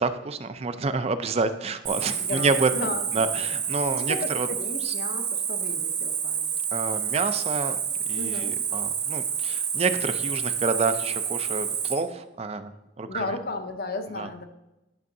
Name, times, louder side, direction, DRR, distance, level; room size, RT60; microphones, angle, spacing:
voice 1, 0.0-4.5 4.8-4.9 6.7-7.8 8.1-12.7 13.0-13.3 14.1-14.3, right 3 dB, 30° right, 11 dB, 0.4 m, -28 dB
Cricket, 1.8-11.9, right 7 dB, 90° right, 2.1 m, -29 dB
voice 2, 2.2-3.1 3.9-6.6 8.2-8.5 13.1-14.4, left 2 dB, 50° left, 7 dB, 0.7 m, -34 dB
11.0 x 6.3 x 2.7 m, 0.96 s
head